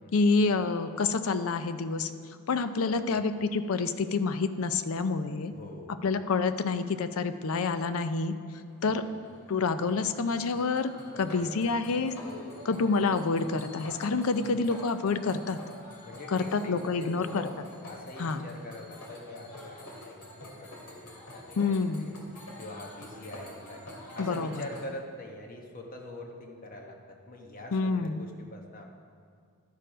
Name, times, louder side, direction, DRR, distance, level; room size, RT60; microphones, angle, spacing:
voice 1, 0.1-2.1 2.5-5.5 6.0-8.3 8.8-9.0 9.5-10.9 11.2-12.1 12.7-15.6 16.3-17.5 18.2-18.4 21.6-22.1 24.2-24.6 27.7-28.2, left 4 dB, 70° left, 11 dB, 0.5 m, -28 dB
voice 2, 2.8-3.2 5.5-6.0 8.8-9.1 11.0-11.6 12.2-12.6 16.0-22.1 22.6-28.9, left 1 dB, 40° left, 2 dB, 1.1 m, -44 dB
sound 1, 8.7-24.9, left 1 dB, 90° left, 2.2 m, -47 dB
12.0 x 6.6 x 5.1 m, 2.1 s
head